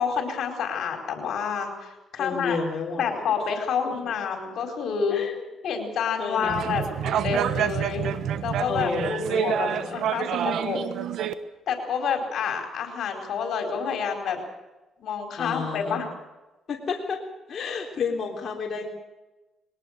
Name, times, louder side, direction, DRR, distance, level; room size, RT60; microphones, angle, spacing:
voice 1, 0.0-2.6 3.0-5.2 5.6-8.1 8.4-10.8 11.7-14.4 15.0-16.1, left 6 dB, 70° left, 4 dB, 4.6 m, -28 dB
voice 2, 2.2-3.2 3.9-4.0 5.1-5.5 6.2-6.8 8.6-10.0 15.4-16.1 16.7-17.2 17.5-18.9, left 5 dB, 45° left, -1 dB, 3.7 m, -31 dB
sound 1, 6.4-11.3, right 9 dB, 75° right, 1.2 m, -28 dB
21.5 x 18.5 x 6.7 m, 1.1 s
cardioid pair, 90°, 0 cm